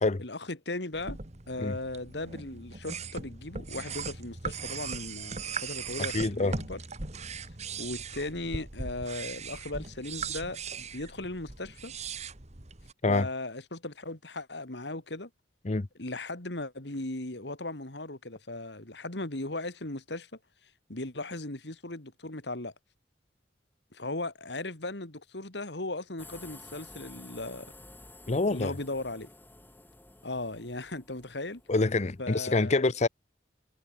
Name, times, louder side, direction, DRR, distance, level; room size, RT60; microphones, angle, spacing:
voice 1, 0.2-1.2 1.5-6.8 7.8-11.9 13.1-15.3 16.0-20.3 20.9-22.7 23.9-27.7 28.5-29.3 30.2-31.6 32.2-32.8, left 2 dB, 70° left, 2.8 m, -37 dB
sound 1, 0.9-12.9, right 5 dB, 40° right, 2.0 m, -39 dB
voice 2, 6.1-6.6 13.0-13.3 15.6-15.9 28.3-28.7 31.7-33.1, left 3 dB, 40° left, 0.7 m, -26 dB
sound 2, 26.2-32.2, left 2 dB, 10° left, 2.0 m, -51 dB
head